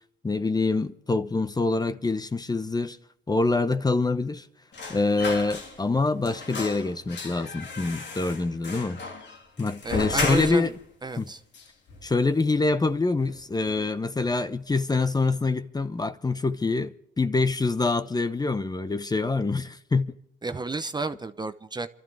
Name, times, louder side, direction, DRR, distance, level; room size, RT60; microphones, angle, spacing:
voice 1, 0.2-3.0 3.3-4.5 4.9-9.0 9.6-10.7 11.2-11.3 12.0-20.1, left 3 dB, 20° left, 0.9 m, -25 dB
sound 1, 4.7-6.0 6.2-10.8 11.1-11.2 11.5-12.4 12.7-12.9 13.2-13.9 14.2-14.4, left 3 dB, 65° left, 3.1 m, -35 dB
voice 2, 9.8-10.7 11.0-11.4 20.4-21.9, right 3 dB, 20° right, 0.8 m, -31 dB
27.5 x 13.0 x 3.5 m
cardioid pair, 90°, 20 cm